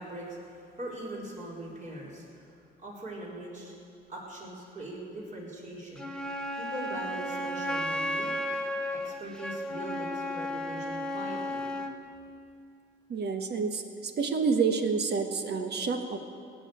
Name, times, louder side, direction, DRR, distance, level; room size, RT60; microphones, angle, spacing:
voice 1, 0.0-3.7 4.1-6.1 6.6-8.3 8.9-11.6, right 1 dB, 40° right, -4 dB, 4.6 m, -41 dB
Wind instrument woodwind instrument, 6.0-12.0, left 1 dB, 5° left, 1.2 m, -34 dB
voice 2, 13.1-16.2, right 5 dB, 55° right, 6 dB, 1.4 m, -28 dB
18.0 x 7.0 x 9.0 m, 2.4 s
cardioid pair, 90°, 20 cm